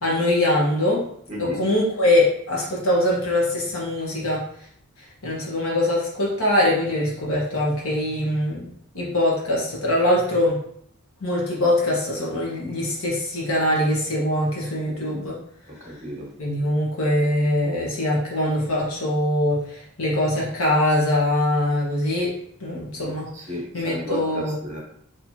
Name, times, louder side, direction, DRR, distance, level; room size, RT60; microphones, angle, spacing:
voice 1, 0.0-1.1 1.4-4.4 5.2-8.7 8.9-10.6 11.2-15.4 16.4-22.3 22.6-23.3 23.7-24.6, left 1 dB, 70° left, -4 dB, 1.3 m, -22 dB
voice 2, 1.3-1.6 15.9-16.3 23.3-24.8, equal, 35° right, 0 dB, 1.2 m, -32 dB
4.5 x 3.2 x 2.8 m, 0.67 s
head